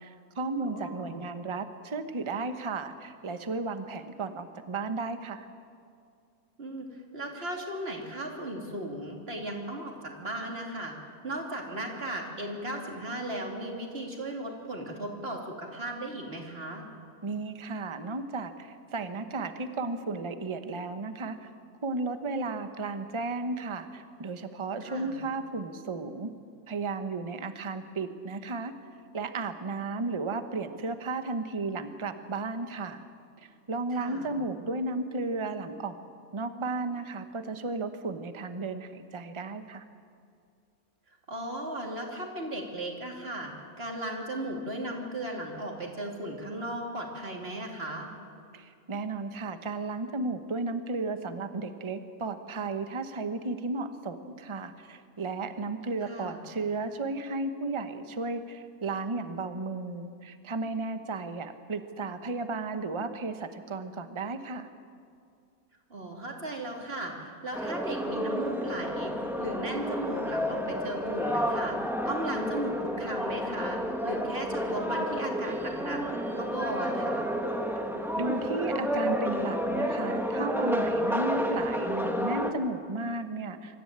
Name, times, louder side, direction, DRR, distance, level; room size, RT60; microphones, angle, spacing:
voice 1, 0.0-5.5 17.2-21.5 21.8-26.3 26.7-28.7 29.1-33.0 33.4-36.0 36.3-39.8 48.5-64.7 78.2-83.8, right 3 dB, 25° right, 9 dB, 0.9 m, -34 dB
voice 2, 0.6-1.2 6.6-6.9 7.1-10.9 11.2-16.8 24.8-25.2 33.9-34.3 41.3-43.5 43.8-48.1 56.0-56.4 65.9-71.8 72.1-76.0 76.4-77.3, right 1 dB, 40° right, 1 dB, 3.0 m, -36 dB
sound 1, 67.5-82.5, equal, ahead, 1.3 m, -30 dB
25.0 x 14.0 x 8.8 m, 2.3 s
omnidirectional pair, 1.6 m